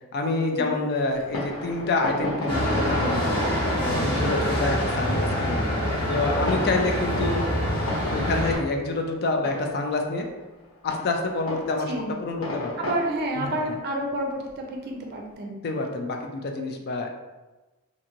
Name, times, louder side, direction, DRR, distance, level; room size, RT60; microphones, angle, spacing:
voice 1, 0.1-3.4 3.8-5.7 6.1-7.5 8.1-10.3 10.8-11.9 12.2-12.7 13.4-13.6 15.6-17.1, left 2 dB, 45° left, 3 dB, 0.3 m, -27 dB
Fireworks, 1.1-15.3, left 2 dB, 70° left, 0.8 m, -37 dB
sound 1, 2.5-8.6, equal, 25° left, 1.0 m, -25 dB
voice 2, 3.8-4.4 11.9-12.1 12.8-15.6, right 1 dB, 45° right, 0 dB, 0.5 m, -30 dB
2.9 x 2.6 x 2.5 m, 1.1 s
head